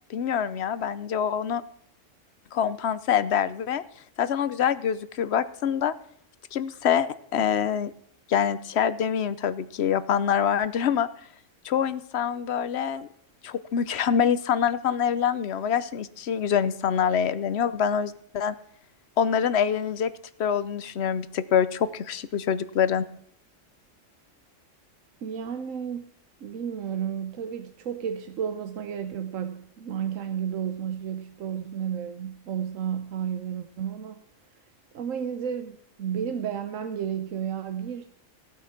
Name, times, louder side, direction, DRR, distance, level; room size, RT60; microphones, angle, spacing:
voice 1, 0.1-1.6 2.5-3.8 4.2-5.9 6.5-7.9 8.3-11.1 11.6-13.1 13.4-18.6 19.2-20.1 20.4-23.1, left 8 dB, 60° left, 15 dB, 1.0 m, -25 dB
voice 2, 25.2-26.0 26.4-34.2 34.9-38.0, right 8 dB, 85° right, 8 dB, 1.2 m, -32 dB
16.5 x 8.6 x 5.9 m, 0.66 s
omnidirectional pair, 1.3 m